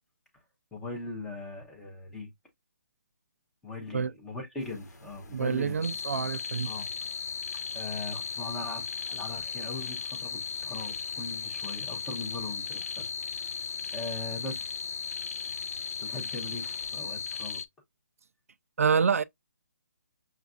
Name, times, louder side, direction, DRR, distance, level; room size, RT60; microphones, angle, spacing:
voice 1, 0.7-2.3 3.6-5.8 6.7-6.9 7.7-13.0 13.4-13.5 13.9-14.7 16.0-17.6, left 2 dB, 5° left, 0.6 m, -40 dB
sound 1, 4.6-17.6, left 1 dB, 90° left, 1.3 m, -52 dB
voice 2, 5.3-6.7 18.8-19.2, right 6 dB, 55° right, 0.3 m, -27 dB
sound 2, 5.8-17.6, left 6 dB, 60° left, 0.5 m, -36 dB
6.2 x 2.4 x 2.2 m
hypercardioid pair, 175°, 9 cm